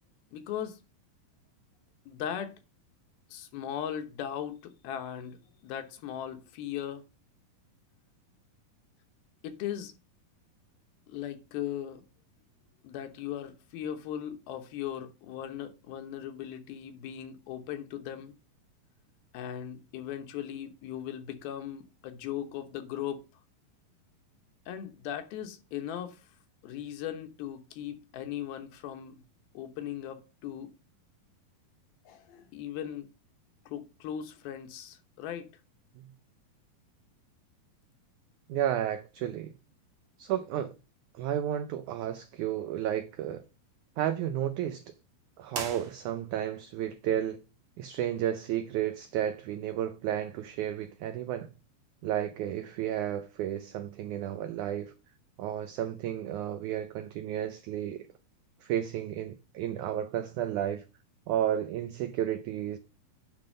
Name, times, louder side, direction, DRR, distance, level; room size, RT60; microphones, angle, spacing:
voice 1, 0.3-0.8 2.1-2.6 3.3-7.0 9.4-9.9 11.1-12.0 12.8-18.3 19.3-23.2 24.7-26.2 26.6-29.2 29.5-30.7 32.1-33.1 33.7-35.5, left 10 dB, 85° left, 3.0 m, -38 dB
voice 2, 38.5-39.5 40.2-40.7 41.2-43.4 44.0-44.9 45.4-47.4 47.8-51.5 52.0-54.9 55.4-58.1 58.6-60.8 61.3-62.8, right 11 dB, 85° right, 1.7 m, -32 dB
sound 1, 45.5-46.5, right 5 dB, 50° right, 2.2 m, -40 dB
9.6 x 3.6 x 6.5 m
omnidirectional pair, 4.2 m